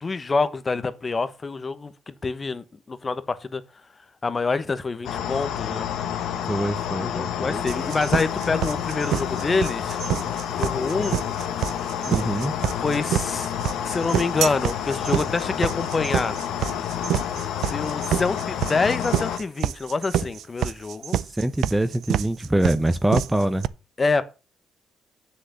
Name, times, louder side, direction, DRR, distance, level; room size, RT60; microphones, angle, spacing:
voice 1, 0.0-3.6 4.2-5.9 7.0-10.0 10.5-11.2 12.8-13.5 13.8-16.3 17.7-21.2 24.0-24.2, left 4 dB, 30° left, 1.0 m, -26 dB
sound 1, 5.0-19.4, left 9 dB, 80° left, 1.3 m, -29 dB
voice 2, 6.4-7.9 12.1-12.5 21.1-23.7, right 1 dB, 10° right, 0.8 m, -24 dB
sound 2, 7.7-23.7, right 10 dB, 75° right, 0.4 m, -27 dB
7.7 x 6.5 x 6.9 m
cardioid pair, 90°, 0 cm